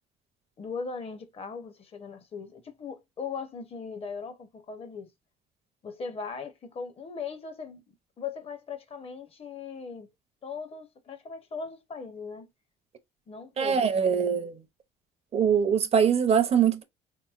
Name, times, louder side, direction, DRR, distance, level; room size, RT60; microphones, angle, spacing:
voice 1, 0.6-5.1 5.8-7.8 8.2-10.1 10.4-12.5 13.3-14.1, left 5 dB, 35° left, 0.6 m, -39 dB
voice 2, 13.6-14.6 15.3-16.8, right 7 dB, 40° right, 0.5 m, -23 dB
3.7 x 2.9 x 2.3 m
cardioid pair, 110°, 17 cm